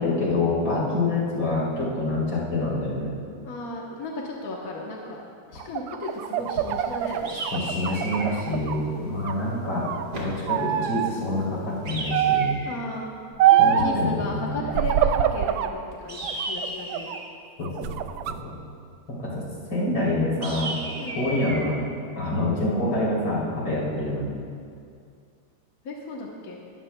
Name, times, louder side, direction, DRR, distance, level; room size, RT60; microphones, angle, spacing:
voice 1, 0.0-3.1 7.5-9.9 10.1-12.5 13.6-14.8 17.6-17.9 18.2-18.5 19.1-19.4 19.7-20.7 21.1-21.8 22.2-24.3, left 2 dB, 75° left, -6 dB, 4.1 m, -26 dB
voice 2, 3.4-5.2 5.5-7.3 8.8-9.2 12.6-13.1 13.5-17.1 19.2-19.4 21.0-21.2 25.8-26.6, left 2 dB, 55° left, -2 dB, 1.5 m, -35 dB
sound 1, 5.6-8.8 9.2-10.1 10.5-11.1 12.1-12.6 13.4-13.9 14.7-15.7 16.2-17.2 17.6-18.3, right 10 dB, 85° right, 1.3 m, -24 dB
sound 2, 6.0-12.2, equal, 55° right, 3.0 m, -45 dB
sound 3, 7.2-8.4 11.9-12.9 16.1-17.4 20.4-21.6, right 2 dB, 35° right, 1.4 m, -34 dB
20.0 x 14.0 x 2.3 m, 2.3 s
omnidirectional pair, 2.1 m